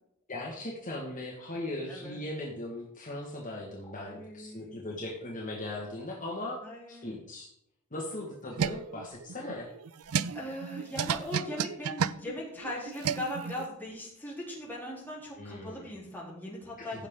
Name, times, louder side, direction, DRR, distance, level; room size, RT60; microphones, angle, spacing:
voice 1, 0.3-6.6 6.9-7.5 7.9-9.7 15.4-15.9 16.9-17.1, left 1 dB, 40° left, -2 dB, 1.7 m, -38 dB
voice 2, 3.9-4.8 6.6-7.1 10.3-17.1, left 1 dB, 10° left, -5 dB, 3.6 m, -39 dB
sound 1, 8.1-13.7, right 7 dB, 80° right, 0.4 m, -33 dB
15.5 x 6.5 x 3.8 m, 0.74 s
head